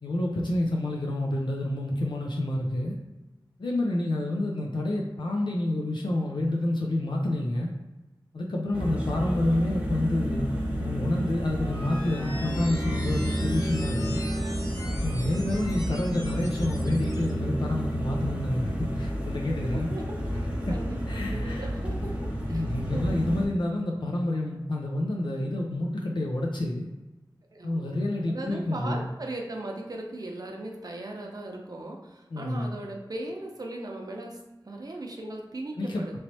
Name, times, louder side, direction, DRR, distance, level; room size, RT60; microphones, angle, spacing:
voice 1, 0.0-3.0 3.6-7.7 8.3-10.5 10.8-14.2 15.0-19.9 20.7-20.8 21.1-21.7 22.5-26.9 27.6-29.1 32.3-32.8 35.8-36.2, left 1 dB, 70° left, -1 dB, 0.5 m, -28 dB
sound 1, 8.7-23.5, equal, 15° right, 0.7 m, -30 dB
sound 2, 11.4-17.3, left 1 dB, 45° left, 1.2 m, -42 dB
voice 2, 19.7-22.2 22.5-22.7 22.9-23.3 27.5-36.2, right 1 dB, 50° right, 1 dB, 0.6 m, -38 dB
3.1 x 2.9 x 2.8 m, 1.1 s
wide cardioid pair, 70°, 8 cm